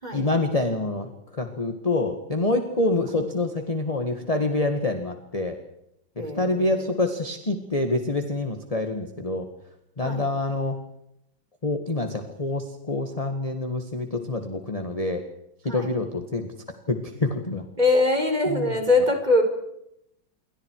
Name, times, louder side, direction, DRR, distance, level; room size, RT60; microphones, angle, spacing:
voice 1, 0.1-5.6 6.2-9.5 10.0-10.8 11.6-15.2 15.6-16.5 16.9-17.6 18.5-18.7, left 2 dB, 20° left, 5 dB, 1.8 m, -26 dB
voice 2, 6.2-6.8 10.0-10.3 15.7-15.9 17.8-19.4, left 2 dB, 20° right, 4 dB, 4.7 m, -23 dB
28.5 x 24.5 x 4.8 m, 0.79 s
omnidirectional pair, 2.1 m